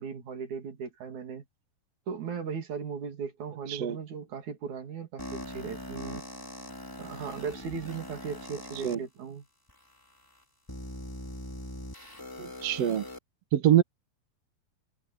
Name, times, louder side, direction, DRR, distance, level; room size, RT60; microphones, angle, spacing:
voice 1, 0.0-1.4 2.1-6.2 7.0-9.4, right 6 dB, 50° right, 3.9 m, -37 dB
sound 1, 5.2-8.9 9.7-9.8 10.7-13.2, left 1 dB, 5° left, 2.6 m, -41 dB
voice 2, 12.4-13.1 13.5-13.8, right 11 dB, 75° right, 1.4 m, -24 dB
omnidirectional pair, 4.8 m